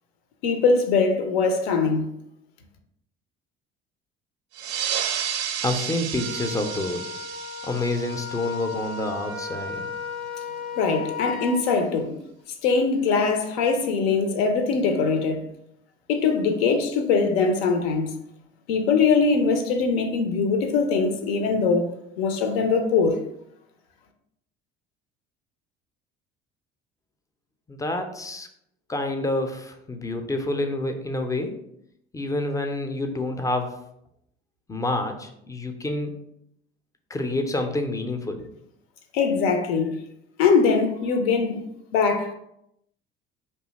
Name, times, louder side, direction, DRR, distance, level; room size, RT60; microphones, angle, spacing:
voice 1, 0.4-2.1 10.8-12.1 12.6-15.4 16.1-18.1 18.7-21.9 22.2-23.2 39.1-40.0 40.4-41.6 41.9-42.3, left 4 dB, 70° left, 0.6 m, -22 dB
sound 1, 4.5-9.6, right 9 dB, 50° right, 0.4 m, -32 dB
voice 2, 5.6-7.1 7.7-9.8 27.7-28.5 28.9-31.5 32.1-33.7 34.7-36.2 37.1-38.5, left 2 dB, 10° left, 0.4 m, -28 dB
Wind instrument woodwind instrument, 6.1-11.6, left 5 dB, 85° left, 1.1 m, -35 dB
2.7 x 2.3 x 3.9 m
hypercardioid pair, 60°, 32 cm